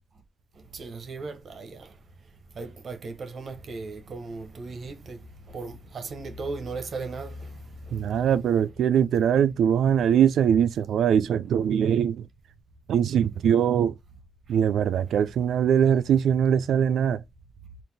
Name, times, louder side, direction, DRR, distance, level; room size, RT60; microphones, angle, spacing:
voice 1, 0.7-1.8 2.6-5.2 5.5-7.3, right 3 dB, 45° right, 0.9 m, -36 dB
voice 2, 7.9-12.3 12.9-13.9 14.5-17.2, right 8 dB, 85° right, 0.4 m, -22 dB
3.9 x 2.6 x 3.3 m
wide cardioid pair, 145°, 0 cm